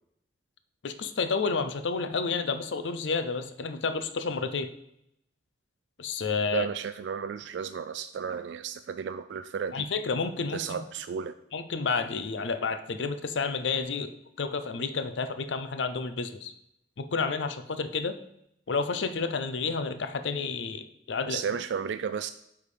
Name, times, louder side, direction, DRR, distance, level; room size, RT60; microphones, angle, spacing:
voice 1, 0.8-4.7 6.0-6.7 9.7-10.8 11.5-14.1 14.4-16.5 17.0-18.1 18.7-21.4, left 4 dB, 75° left, 10 dB, 0.6 m, -30 dB
voice 2, 6.5-9.9 10.5-11.4 21.3-22.3, right 7 dB, 70° right, 10 dB, 0.3 m, -33 dB
8.3 x 3.6 x 5.0 m, 0.76 s
head